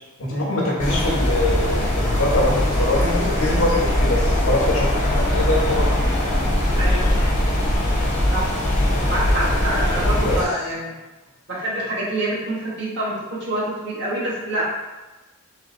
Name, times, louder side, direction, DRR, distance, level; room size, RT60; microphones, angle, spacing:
voice 1, 0.2-5.9 10.2-10.4, left 1 dB, 75° left, -3 dB, 1.1 m, -23 dB
sound 1, 0.8-10.4, left 1 dB, 35° left, 0.7 m, -21 dB
voice 2, 6.7-7.1 8.3-8.5 9.1-10.9 11.5-14.6, right 1 dB, 55° right, -6 dB, 1.3 m, -26 dB
4.0 x 2.9 x 3.7 m, 1.1 s
head